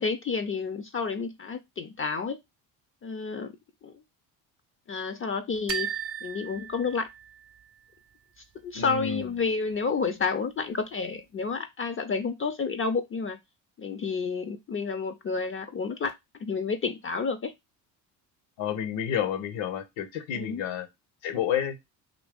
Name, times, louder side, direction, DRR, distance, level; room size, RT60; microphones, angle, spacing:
voice 1, 0.0-2.4 3.0-3.5 3.8-3.9 4.9-5.9 6.2-7.1 8.6-13.4 13.8-16.1 16.4-17.5 20.3-20.6, left 5 dB, 30° left, 0.4 m, -30 dB
sound 1, 5.7-7.6, right 7 dB, 30° right, 0.5 m, -35 dB
voice 2, 8.7-9.3 18.6-20.9 21.2-21.8, left 9 dB, 70° left, 0.8 m, -30 dB
2.8 x 2.7 x 3.4 m
hypercardioid pair, 60°, 48 cm